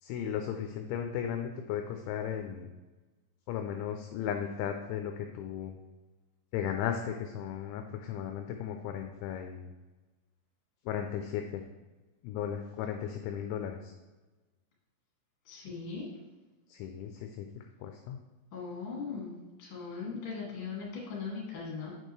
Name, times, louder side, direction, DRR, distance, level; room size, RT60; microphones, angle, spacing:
voice 1, 0.0-2.7 3.5-5.7 6.5-9.7 10.9-11.6 12.2-13.9 16.7-17.5 17.8-18.2, left 9 dB, 85° left, 5 dB, 2.7 m, -35 dB
voice 2, 15.5-16.0 18.5-21.9, left 5 dB, 40° left, -4 dB, 2.0 m, -39 dB
8.1 x 6.7 x 3.2 m, 1.2 s
omnidirectional pair, 5.9 m